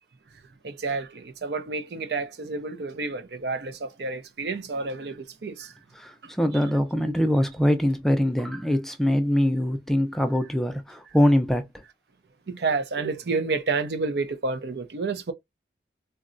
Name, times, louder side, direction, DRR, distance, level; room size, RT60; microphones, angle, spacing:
voice 1, 0.6-5.7 6.2-6.3 12.5-15.3, right 4 dB, 65° right, 0.5 m, -30 dB
voice 2, 5.9-11.7, equal, ahead, 0.3 m, -23 dB
3.8 x 2.2 x 2.5 m
head